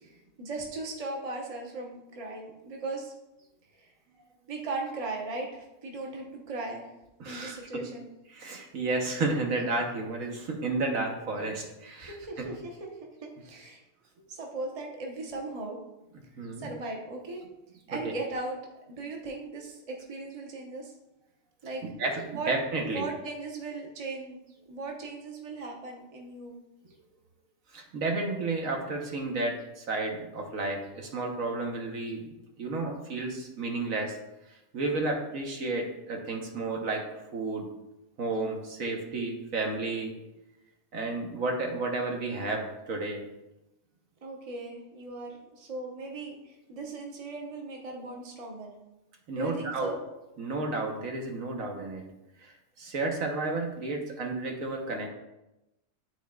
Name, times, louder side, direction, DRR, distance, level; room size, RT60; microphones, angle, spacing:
voice 1, 0.4-3.1 3.8-3.9 4.5-6.8 7.2-8.1 12.0-13.8 14.3-15.8 16.6-17.4 17.9-18.6 18.9-20.9 21.6-21.8 22.3-22.5 22.8-24.4 24.7-26.6 44.2-48.7 49.3-50.0, right 3 dB, 30° right, -1 dB, 0.9 m, -38 dB
voice 2, 7.2-7.8 8.3-12.5 16.4-16.7 17.9-18.1 21.8-23.1 27.7-32.2 32.6-34.2 34.5-37.0 37.3-37.6 38.2-40.1 40.9-43.2 49.3-49.9 50.4-52.0 52.4-55.1, right 3 dB, 75° right, 1 dB, 1.4 m, -32 dB
11.0 x 4.1 x 2.3 m, 0.94 s
omnidirectional pair, 1.4 m